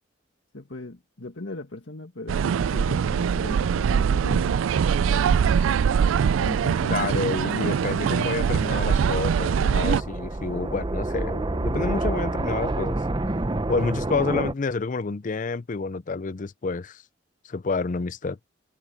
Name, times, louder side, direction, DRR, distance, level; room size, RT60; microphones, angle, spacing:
voice 1, 0.5-4.6 5.1-5.9 6.4-7.0 7.4-7.7 13.9-14.0, left 2 dB, 70° left, 1.8 m, -38 dB
sound 1, 2.3-10.0, right 7 dB, 90° right, 0.3 m, -22 dB
voice 2, 6.9-13.0 13.7-17.0 17.5-18.4, left 4 dB, 40° left, 0.5 m, -29 dB
sound 2, 8.4-14.5, right 2 dB, 25° right, 0.7 m, -29 dB
head